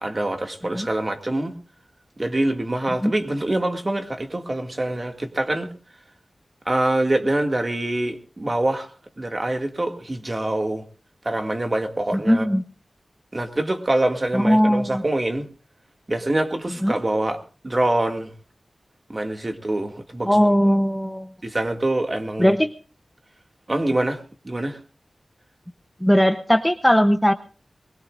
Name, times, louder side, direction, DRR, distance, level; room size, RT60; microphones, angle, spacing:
voice 1, 0.0-1.6 2.2-5.7 6.7-8.9 9.2-10.8 11.2-12.5 13.3-15.5 16.1-18.3 19.1-20.5 21.4-22.5 23.7-24.2 24.5-24.8, right 1 dB, 30° right, 4 dB, 2.2 m, -25 dB
voice 2, 12.1-12.6 14.3-15.0 16.8-17.0 20.3-21.3 22.4-22.7 26.0-27.3, equal, 5° left, 7 dB, 0.8 m, -19 dB
22.0 x 20.5 x 2.5 m, 0.37 s
wide cardioid pair, 90°, 0 cm